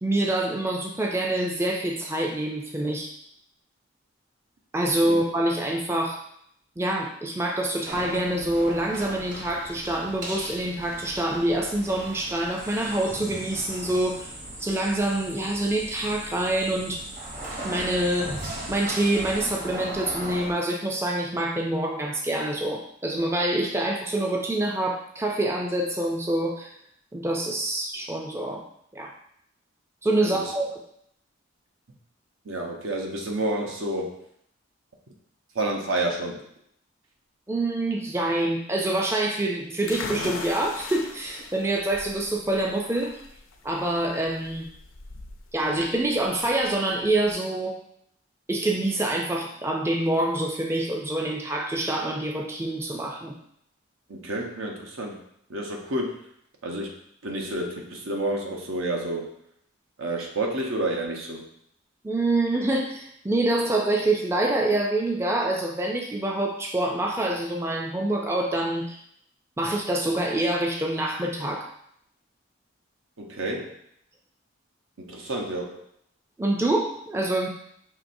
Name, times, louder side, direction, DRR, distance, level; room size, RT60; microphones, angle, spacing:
voice 1, 0.0-3.1 4.7-6.2 6.8-14.3 14.6-17.0 17.6-18.4 18.7-26.7 27.1-28.6 28.9-29.1 30.0-30.8 37.5-43.2 43.6-44.7 45.5-47.8 48.5-53.4 62.0-69.0 69.6-71.7 76.4-77.5, right 1 dB, 10° right, 0 dB, 0.3 m, -26 dB
sound 1, 7.9-20.5, right 1 dB, 40° right, 0.8 m, -39 dB
sound 2, 12.6-19.6, right 2 dB, 70° right, 1.3 m, -43 dB
voice 2, 30.2-30.5 32.4-34.1 35.5-36.4 54.1-55.2 55.5-56.2 56.6-56.9 57.2-59.3 60.0-61.5 73.2-73.8 75.0-75.8, right 1 dB, 85° right, 0 dB, 0.9 m, -29 dB
sound 3, 39.9-47.4, left 4 dB, 80° left, 0.5 m, -40 dB
6.1 x 3.2 x 2.6 m, 0.71 s
head